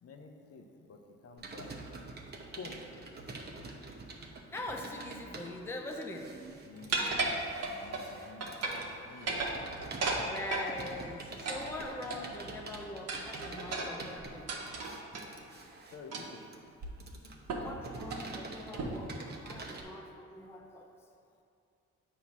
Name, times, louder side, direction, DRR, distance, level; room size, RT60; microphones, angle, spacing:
voice 1, 0.0-1.8 2.5-2.8 6.7-8.6 8.8-9.4 11.4-11.8 15.9-16.4, left 4 dB, 50° left, 3 dB, 0.8 m, -50 dB
Computer keyboard, 1.4-19.8, right 3 dB, 35° right, 0.8 m, -47 dB
voice 2, 4.3-6.3 10.3-14.5 17.6-20.9, left 2 dB, 10° left, 1 dB, 0.6 m, -42 dB
sound 1, 6.9-8.1 8.4-8.9 9.2-10.7 11.4-12.5 13.1-15.3 16.1-16.4 16.8-16.9 17.5-17.7 18.0-18.3 18.8-19.1, right 3 dB, 55° right, 1.0 m, -35 dB
7.9 x 2.8 x 5.9 m, 2.5 s
cardioid pair, 90°, 30 cm